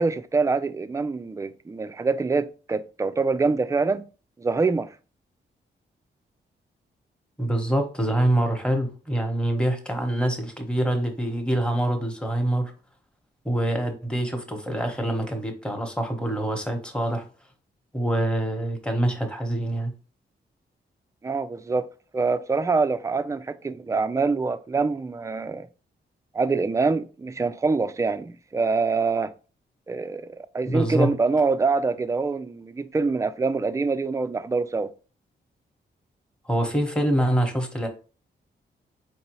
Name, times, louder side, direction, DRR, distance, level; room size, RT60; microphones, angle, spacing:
voice 1, 0.0-4.0 4.4-4.9 21.2-21.9 22.1-25.7 26.3-29.3 29.9-34.9, right 4 dB, 15° right, 0.3 m, -25 dB
voice 2, 7.4-12.7 13.4-17.2 17.9-19.9 30.7-31.1 36.4-37.9, right 1 dB, 5° left, 1.0 m, -25 dB
4.5 x 2.8 x 3.0 m
cardioid pair, 70°, 20 cm